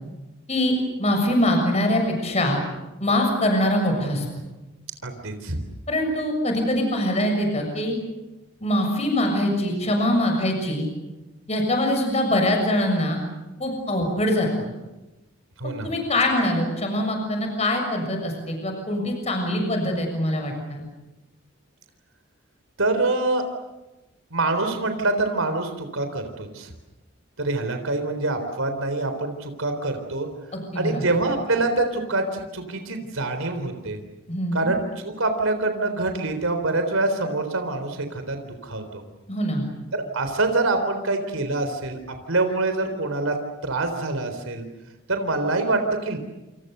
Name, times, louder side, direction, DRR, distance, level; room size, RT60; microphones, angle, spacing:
voice 1, 0.5-2.6 3.0-4.2 5.9-7.9 8.6-10.9 11.5-13.2 13.6-14.5 15.8-20.8 30.5-31.0 34.3-34.7 39.3-39.7, left 1 dB, 30° left, 3 dB, 6.8 m, -23 dB
voice 2, 5.0-5.6 15.6-15.9 22.8-23.4 24.3-26.7 27.4-30.3 30.8-34.0 34.5-39.0 39.9-42.0 42.3-43.4 43.6-44.7 45.1-46.2, right 2 dB, 85° right, 6 dB, 3.8 m, -25 dB
28.5 x 28.0 x 6.8 m, 1.0 s
head